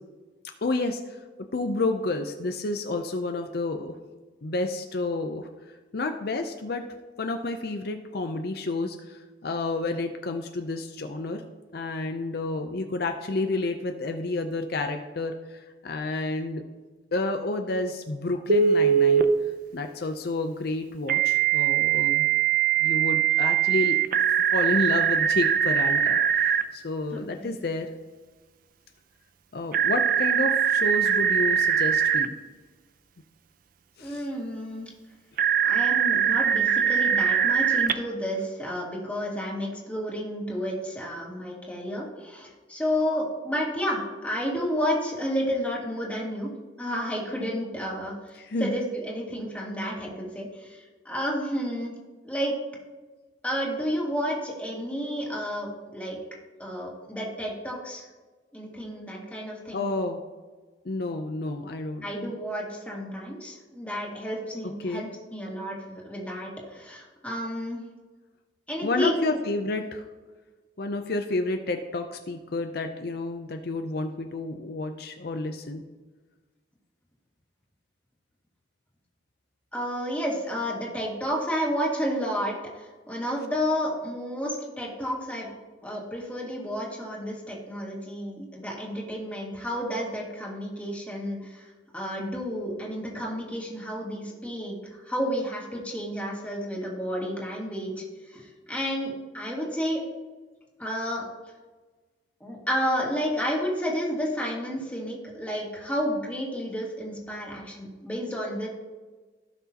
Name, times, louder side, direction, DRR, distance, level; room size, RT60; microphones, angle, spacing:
voice 1, 0.6-1.2 1.5-4.0 4.4-6.8 7.2-11.4 11.7-16.6 17.1-19.3 19.7-22.2 22.8-24.0 24.5-27.9 29.5-32.3 34.0-34.2 48.4-48.8 59.7-60.2 60.8-62.0 64.8-65.1 68.8-70.0 70.8-75.8, left 2 dB, 60° left, 5 dB, 0.6 m, -30 dB
Telephone, 18.5-19.2 21.1-26.6 29.7-32.3 35.4-37.9, right 8 dB, 50° right, 0.5 m, -22 dB
voice 2, 27.1-27.5 34.0-34.9 35.6-46.5 46.8-51.9 52.2-52.6 53.4-56.2 56.6-58.1 58.5-59.8 62.0-67.8 68.7-69.4 79.7-85.5 85.8-100.0 100.8-101.3 102.4-108.7, equal, 10° left, -3 dB, 2.0 m, -31 dB
16.5 x 6.1 x 2.9 m, 1.3 s
head